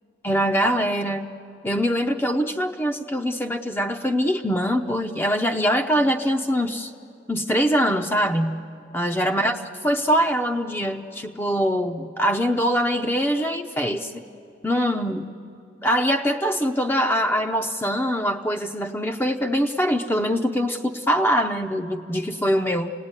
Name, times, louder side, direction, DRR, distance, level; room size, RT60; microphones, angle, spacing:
voice 1, 0.2-1.3 1.6-6.9 7.3-8.6 8.9-9.6 9.8-14.2 14.6-15.3 15.8-22.9, equal, 10° left, 4 dB, 0.6 m, -23 dB
28.0 x 18.5 x 9.7 m, 2.5 s
head